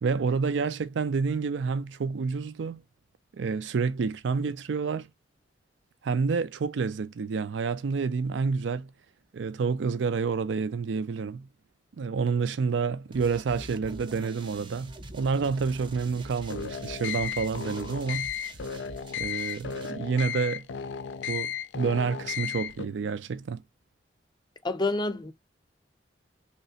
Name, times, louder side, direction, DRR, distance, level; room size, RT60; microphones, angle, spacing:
voice 1, 0.0-2.8 3.3-5.1 6.0-8.9 9.3-11.5 12.0-18.3 19.2-20.7 21.3-23.6, right 5 dB, 90° right, 0.4 m, -29 dB
sound 1, 13.1-19.9, right 2 dB, 25° right, 0.6 m, -45 dB
sound 2, 16.4-22.9, left 7 dB, 80° left, 0.4 m, -34 dB
voice 2, 24.6-25.3, left 2 dB, 25° left, 0.6 m, -28 dB
3.2 x 2.9 x 2.8 m
head